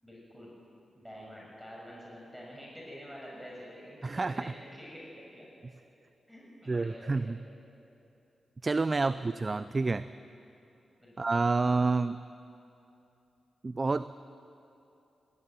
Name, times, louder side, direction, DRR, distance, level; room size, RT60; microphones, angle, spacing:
voice 1, 0.0-0.5 0.9-5.5 6.3-7.4 9.0-9.2 11.0-11.3, equal, ahead, -4 dB, 6.7 m, -47 dB
voice 2, 4.0-4.3 6.7-7.4 8.6-10.1 11.2-12.2 13.6-14.1, right 3 dB, 40° right, 14 dB, 0.5 m, -28 dB
20.0 x 16.0 x 9.7 m, 2.8 s
cardioid pair, 60°, 0 cm